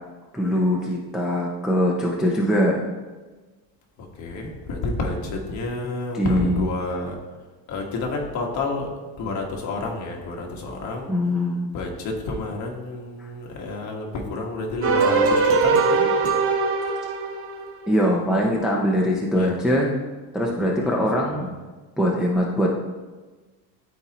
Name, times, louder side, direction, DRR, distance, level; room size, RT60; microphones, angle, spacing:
voice 1, 0.3-2.8 6.2-6.6 11.1-11.7 13.2-13.3 17.9-19.9 20.3-21.5 22.0-22.7, equal, ahead, -3 dB, 0.5 m, -22 dB
voice 2, 4.0-7.2 7.7-11.1 11.7-16.1 19.3-19.6 20.7-21.5, left 2 dB, 45° left, 0 dB, 1.5 m, -30 dB
sound 1, 14.8-18.1, right 4 dB, 35° right, 0.8 m, -21 dB
13.0 x 4.3 x 3.0 m, 1.3 s
cardioid pair, 155°, 39 cm